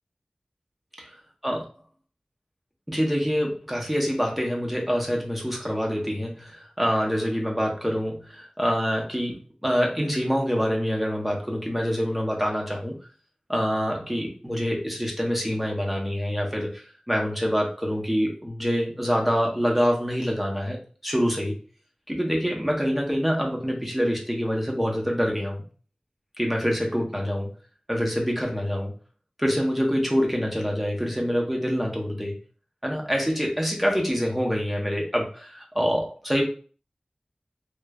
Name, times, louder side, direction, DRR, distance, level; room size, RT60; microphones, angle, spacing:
voice 1, 2.9-13.0 13.5-20.8 21.0-21.6 22.1-25.6 26.4-27.5 27.9-28.9 29.4-32.4 32.8-36.4, equal, 5° right, -1 dB, 0.7 m, -26 dB
3.0 x 2.1 x 2.3 m, 0.39 s
wide cardioid pair, 55°, 2 cm